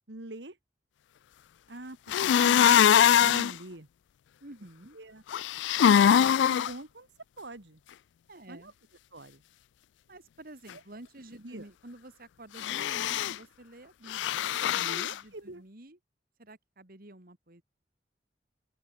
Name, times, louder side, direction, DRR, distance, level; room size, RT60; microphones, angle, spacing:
voice 1, 0.1-0.6 1.7-3.9 4.9-5.2 5.6-7.1 7.4-7.8 8.5-8.7 9.1-9.4 11.4-11.7 14.6-15.6, right 1 dB, 70° right, 2.5 m, -45 dB
sound 1, 2.1-3.5 5.3-6.7 12.6-13.3 14.1-15.1, left 9 dB, 80° left, 0.3 m, -22 dB
voice 2, 4.4-5.0 8.3-8.7 10.1-16.0 16.4-17.6, right 1 dB, 55° right, 2.5 m, -50 dB
open air
head